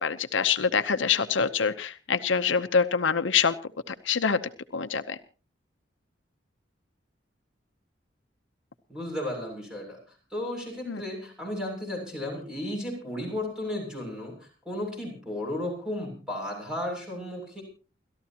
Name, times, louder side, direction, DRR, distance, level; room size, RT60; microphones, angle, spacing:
voice 1, 0.0-3.5 4.1-4.4 4.7-5.2 10.9-11.0, left 6 dB, 80° left, 10 dB, 0.8 m, -25 dB
voice 2, 8.9-10.0 10.3-17.6, left 1 dB, 5° right, 0 dB, 7.3 m, -34 dB
29.0 x 13.5 x 2.9 m, 0.36 s
head